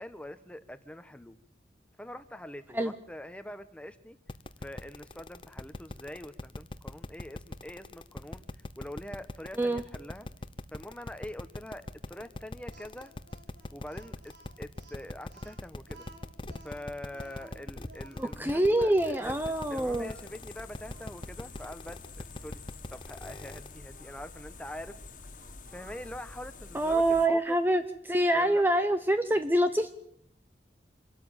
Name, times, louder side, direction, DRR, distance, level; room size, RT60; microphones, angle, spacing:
voice 1, 0.0-1.4 2.0-4.2 4.6-8.5 8.8-10.3 10.7-13.1 13.7-16.0 16.6-19.4 19.7-22.6 22.9-25.0 25.7-27.6 28.3-28.6, left 1 dB, 5° left, 11 dB, 1.2 m, -44 dB
sound 1, 4.3-23.8, left 1 dB, 30° left, 0.9 m, -41 dB
Speech, 12.7-20.3 20.9-21.0 21.5-22.5 23.9-24.2 25.4-26.1, right 2 dB, 80° right, 4.1 m, -56 dB
voice 2, 18.2-20.1 26.7-29.9, right 1 dB, 10° right, 9 dB, 0.8 m, -26 dB
sound 2, 19.2-27.3, left 3 dB, 45° left, 2.1 m, -48 dB
26.5 x 13.0 x 9.0 m, 0.70 s
head